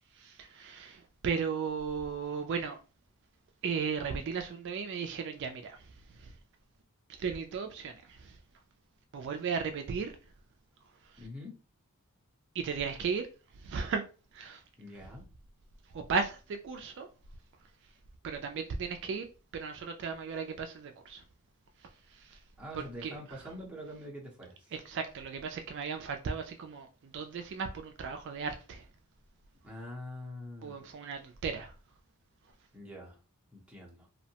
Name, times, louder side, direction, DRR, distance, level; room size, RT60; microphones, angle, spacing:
voice 1, 0.2-2.8 3.6-5.8 6.2-6.3 7.2-8.3 9.1-10.1 12.5-13.3 13.6-14.0 14.3-14.6 15.9-17.1 18.2-19.3 19.5-21.2 22.3-22.4 22.7-23.2 24.7-28.8 30.6-31.7, right 5 dB, 55° right, 0.3 m, -35 dB
voice 2, 11.2-11.5 14.8-15.2 22.6-24.7 29.6-30.8 32.7-33.2 33.5-34.1, left 1 dB, 5° right, 0.8 m, -45 dB
2.7 x 2.1 x 2.8 m
head